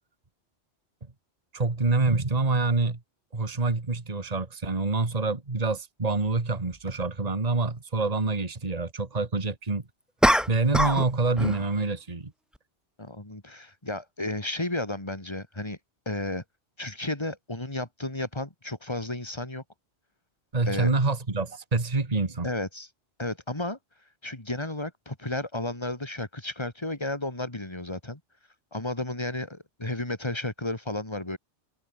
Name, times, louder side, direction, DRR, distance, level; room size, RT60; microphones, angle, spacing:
voice 1, 1.5-3.0 3.3-9.8 10.5-12.3 20.5-22.5, right 3 dB, 35° right, 2.0 m, -26 dB
sound 1, 6.2-6.3 10.2-11.1 11.4-11.7, equal, ahead, 0.4 m, -23 dB
voice 2, 13.0-15.8 16.1-16.4 16.8-19.6 20.7-20.9 22.4-22.9 23.2-23.8 24.2-28.2 28.7-31.4, left 2 dB, 25° left, 3.0 m, -33 dB
omnidirectional pair, 1.2 m